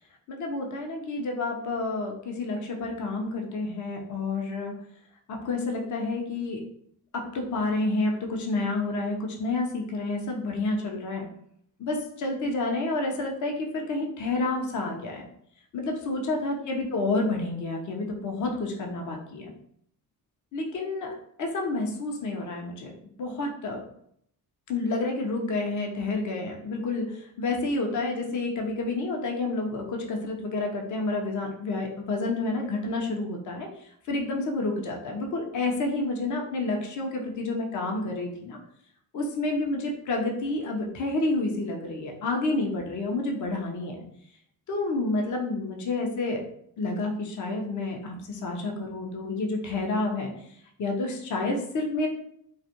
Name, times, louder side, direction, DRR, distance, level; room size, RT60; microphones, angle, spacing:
voice 1, 0.3-4.7 5.3-6.6 7.1-11.2 11.8-15.2 15.7-19.5 20.5-21.1 21.4-22.9 23.2-23.8 24.7-33.7 34.1-38.6 39.1-44.0 44.7-46.4 46.8-50.3 50.8-52.1, left 2 dB, 50° left, 1 dB, 0.7 m, -29 dB
2.4 x 2.1 x 2.8 m, 0.69 s
cardioid pair, 70°, 37 cm